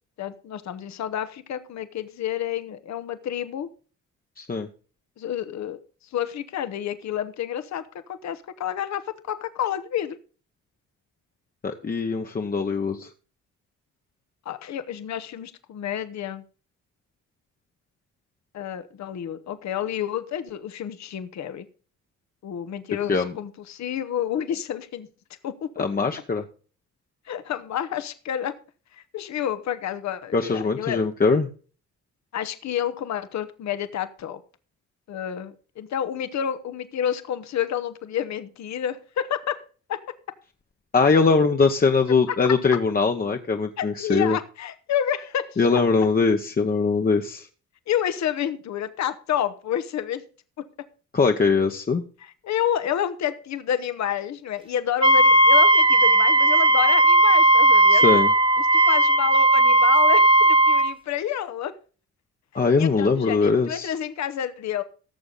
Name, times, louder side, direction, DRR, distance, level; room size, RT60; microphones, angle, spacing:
voice 1, 0.2-3.7 5.2-5.8 6.1-7.8 8.1-10.2 14.4-16.4 18.5-21.7 22.4-25.1 25.4-25.7 27.3-28.6 28.9-31.1 32.3-34.4 35.1-39.6 39.9-40.0 42.3-42.5 43.8-45.7 47.9-50.2 52.2-58.0 58.7-61.7 62.8-64.8, left 10 dB, 65° left, 11 dB, 1.1 m, -29 dB
voice 2, 4.4-4.7 11.6-13.1 23.1-23.3 25.8-26.4 30.3-31.5 40.9-44.4 45.6-47.5 51.1-52.0 57.9-58.3 62.5-63.9, left 4 dB, 30° left, 4 dB, 1.0 m, -21 dB
Wind instrument woodwind instrument, 55.0-60.9, right 2 dB, 15° right, 0.8 m, -16 dB
17.0 x 6.9 x 3.9 m, 0.38 s
cardioid pair, 90°, 30 cm